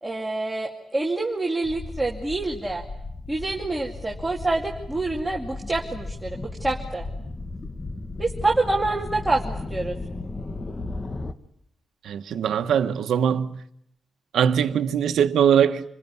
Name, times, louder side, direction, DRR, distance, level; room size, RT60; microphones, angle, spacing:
voice 1, 0.0-2.8 3.3-7.1 8.2-10.0, right 2 dB, 10° right, 2.4 m, -26 dB
sound 1, 1.6-11.3, left 2 dB, 25° left, 1.5 m, -35 dB
voice 2, 12.0-13.6 14.3-15.8, right 8 dB, 90° right, 1.3 m, -21 dB
28.0 x 21.5 x 9.7 m
wide cardioid pair, 130°, 0 cm